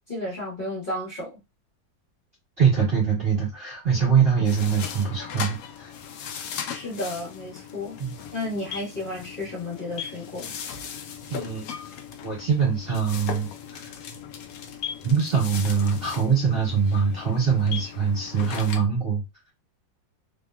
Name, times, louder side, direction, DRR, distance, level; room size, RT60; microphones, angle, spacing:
voice 1, 0.1-1.4 6.7-8.0 8.3-10.5, left 1 dB, 30° left, 1.2 m, -32 dB
voice 2, 2.6-5.9 8.0-8.1 11.3-11.7 12.2-13.9 15.0-19.2, right 6 dB, 40° right, 1.1 m, -23 dB
sound 1, 4.4-18.8, left 7 dB, 80° left, 0.8 m, -38 dB
3.2 x 2.9 x 2.2 m
omnidirectional pair, 2.1 m